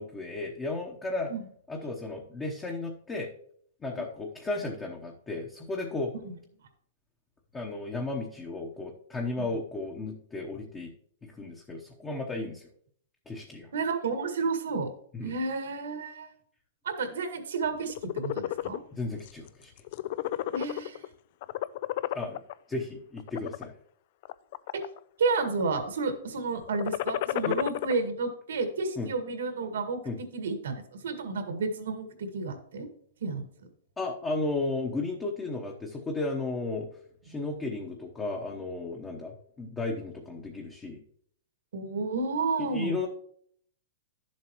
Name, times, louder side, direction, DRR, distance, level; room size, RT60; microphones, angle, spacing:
voice 1, 0.0-1.3 1.7-3.3 3.8-6.1 7.5-10.9 11.2-12.7 13.3-13.7 15.1-15.4 18.9-19.7 22.1-22.4 22.7-23.8 27.4-27.6 29.0-29.1 30.0-30.2 34.0-36.9 37.2-41.0 42.6-43.1, left 2 dB, 15° left, 1 dB, 0.9 m, -34 dB
voice 2, 13.7-14.9 15.2-16.3 16.8-18.8 20.5-21.1 24.7-24.8 25.2-30.7 31.0-32.9 33.2-33.5 37.3-37.4 41.7-43.0, right 4 dB, 85° right, 6 dB, 1.9 m, -31 dB
sound 1, 17.8-18.8 19.3-19.5 19.8-21.1 21.4-22.5 23.2-23.6 24.2-25.0 25.3-25.8 26.6-27.9, left 14 dB, 45° left, 0.3 m, -32 dB
11.5 x 7.4 x 3.1 m, 0.62 s
hypercardioid pair, 155°, 0 cm